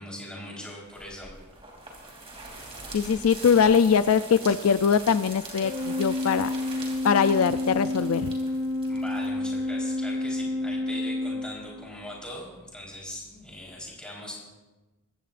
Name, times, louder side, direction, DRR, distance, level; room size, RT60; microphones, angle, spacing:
voice 1, 0.0-1.4 8.9-14.3, left 1 dB, 5° left, -4 dB, 4.0 m, -40 dB
sound 1, 0.9-9.7, right 3 dB, 25° right, 2.9 m, -43 dB
voice 2, 2.9-5.7 6.0-6.5 7.0-8.3, left 6 dB, 75° left, 12 dB, 0.4 m, -21 dB
Organ, 5.6-12.2, left 1 dB, 55° right, 3.5 m, -30 dB
22.5 x 15.5 x 2.5 m, 1.1 s
head